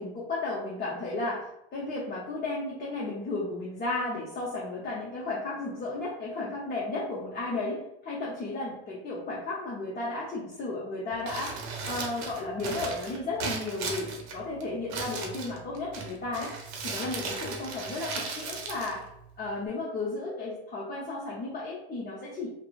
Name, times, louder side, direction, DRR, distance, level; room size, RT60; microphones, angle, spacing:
voice 1, 0.0-11.6 11.8-16.5 16.8-19.0 19.4-22.5, left 2 dB, 30° left, -6 dB, 0.7 m, -34 dB
Crumpling crinkling, 11.1-19.7, right 4 dB, 55° right, 0.7 m, -37 dB
2.9 x 2.1 x 2.4 m, 0.78 s
hypercardioid pair, 90°, 33 cm